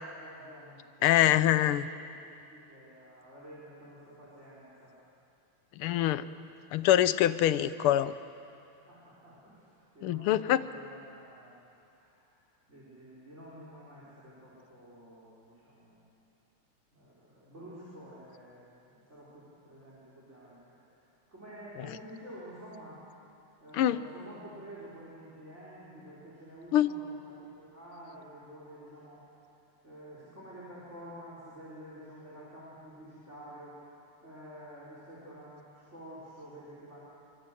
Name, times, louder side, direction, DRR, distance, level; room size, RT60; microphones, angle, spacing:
voice 1, 0.2-1.8 2.2-5.0 8.8-12.4 12.7-16.1 16.9-20.8 21.3-23.0 23.6-29.2 29.8-33.8 34.2-37.0, equal, 30° right, -7 dB, 5.2 m, -50 dB
voice 2, 1.0-1.9 5.8-6.3 6.7-8.1 10.0-10.6 21.7-22.0 23.7-24.0 26.7-26.9, left 12 dB, 85° left, 14 dB, 1.7 m, -25 dB
28.5 x 25.0 x 7.8 m, 2.7 s
omnidirectional pair, 2.4 m